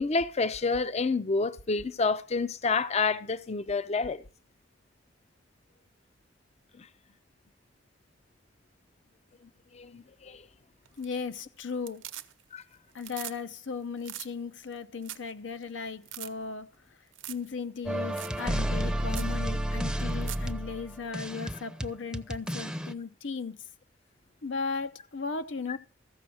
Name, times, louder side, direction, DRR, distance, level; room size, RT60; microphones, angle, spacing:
voice 1, 0.0-4.2 9.7-10.4 12.5-12.6, left 4 dB, 35° left, 0.5 m, -28 dB
sound 1, 10.9-11.4 11.7-12.6 12.9-13.4 13.7-13.8 14.0-14.3 14.7-14.8 15.0-15.3 15.6-15.7 16.0-16.3 17.1-17.5 17.8-17.9 18.2-18.4 18.8-18.9 19.1-19.3 20.0-20.5 22.7-22.8, right 14 dB, 85° right, 0.8 m, -42 dB
voice 2, 11.0-12.0 12.9-16.7 17.3-23.6 24.4-25.8, left 5 dB, 75° left, 0.8 m, -36 dB
sound 2, 17.9-22.9, equal, 5° right, 0.6 m, -31 dB
14.5 x 6.0 x 6.3 m
head